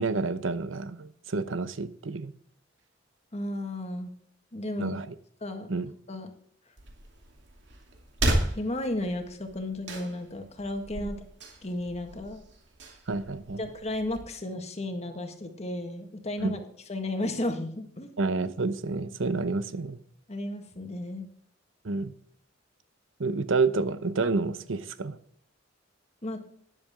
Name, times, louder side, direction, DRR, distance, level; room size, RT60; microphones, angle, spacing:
voice 1, 0.0-2.3 4.8-5.1 5.7-5.9 11.0-11.1 13.1-13.6 16.4-16.6 18.2-20.0 21.8-22.1 23.2-25.2, right 3 dB, 85° right, 0.8 m, -29 dB
voice 2, 3.3-4.1 4.5-5.0 5.4-5.7 6.1-6.3 8.5-11.2 11.6-12.4 13.6-18.1 20.3-21.3 26.2-26.4, left 1 dB, 35° left, 1.7 m, -33 dB
sound 1, 6.8-14.2, right 1 dB, 65° right, 2.5 m, -35 dB
12.5 x 10.5 x 3.7 m
head